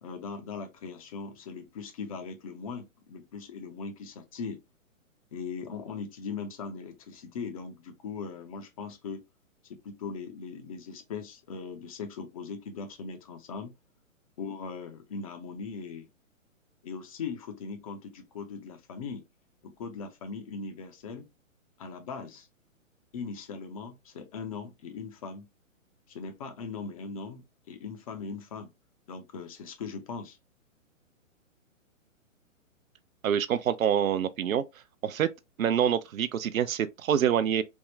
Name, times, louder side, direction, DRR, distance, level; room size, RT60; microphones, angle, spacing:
voice 1, 0.0-4.6 5.3-9.2 9.7-13.7 14.4-16.1 16.8-19.2 19.6-21.3 21.8-22.5 23.1-25.5 26.1-28.7 29.1-30.4, left 5 dB, 30° left, 0.5 m, -39 dB
voice 2, 33.2-34.6 35.0-35.3 35.6-37.6, right 9 dB, 80° right, 0.5 m, -26 dB
3.5 x 2.1 x 2.6 m
hypercardioid pair, 125°, 40 cm